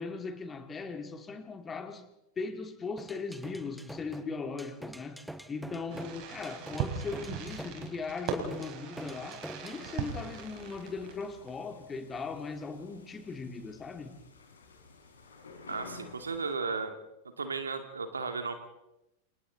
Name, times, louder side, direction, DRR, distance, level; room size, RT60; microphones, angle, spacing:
voice 1, 0.0-2.0 2.4-5.2 5.5-14.1, left 4 dB, 20° left, 6 dB, 2.6 m, -39 dB
sound 1, 3.0-9.9, equal, ahead, 1.2 m, -46 dB
Fireworks, 5.9-11.5, right 7 dB, 45° right, 4.8 m, -39 dB
sound 2, 9.6-16.5, left 4 dB, 70° left, 5.6 m, -53 dB
voice 2, 15.7-16.9 17.4-18.5, right 4 dB, 75° right, 6 dB, 2.5 m, -34 dB
29.5 x 27.5 x 4.1 m, 0.92 s
figure-of-eight pair, 90°, 0 cm